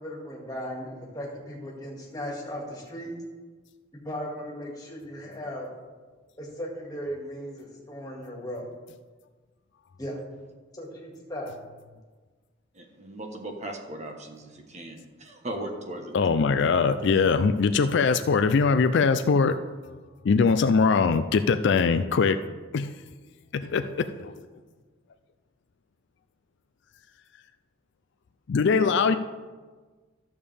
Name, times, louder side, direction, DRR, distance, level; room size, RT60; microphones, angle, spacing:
voice 1, 0.0-3.1 4.0-5.7 6.4-8.7 10.0-10.2 10.7-11.5, equal, 20° left, 2.0 m, -37 dB
voice 2, 12.7-16.1 17.1-17.2, right 1 dB, 35° right, 1.1 m, -38 dB
voice 3, 16.1-19.6 20.2-22.4 22.7-22.9 23.5-24.4 28.5-29.2, left 5 dB, 65° left, 0.4 m, -22 dB
13.5 x 7.1 x 3.4 m
head